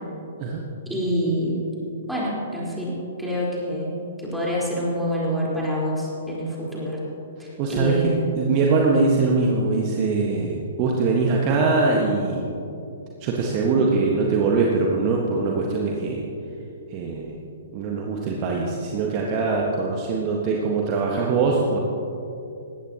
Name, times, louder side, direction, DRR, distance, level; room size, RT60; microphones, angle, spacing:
voice 1, 0.9-1.6 2.1-7.0 7.4-8.4, equal, ahead, -7 dB, 4.3 m, -27 dB
voice 2, 7.6-12.6 13.2-16.2 16.9-17.4 17.7-21.8, right 4 dB, 30° right, -1 dB, 1.5 m, -22 dB
20.0 x 16.5 x 3.0 m, 2.7 s
figure-of-eight pair, 120°, 0 cm